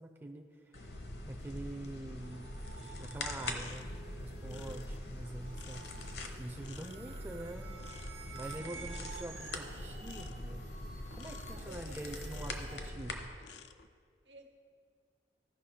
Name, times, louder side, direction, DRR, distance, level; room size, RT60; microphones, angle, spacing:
voice 1, 0.0-2.5 2.9-3.9 4.1-5.8 6.4-10.7 11.1-13.3, right 1 dB, 10° right, 2 dB, 0.4 m, -45 dB
sound 1, 0.7-13.3, left 1 dB, 65° left, 0.9 m, -43 dB
sound 2, 2.2-12.9, right 5 dB, 70° right, 0.8 m, -52 dB
sound 3, 2.9-12.9 13.3-13.9, left 8 dB, 80° left, 0.4 m, -56 dB
voice 2, 8.5-9.0 11.5-12.1 14.2-14.5, right 2 dB, 90° right, 2 dB, 1.2 m, -56 dB
15.0 x 5.6 x 4.2 m, 2.1 s
head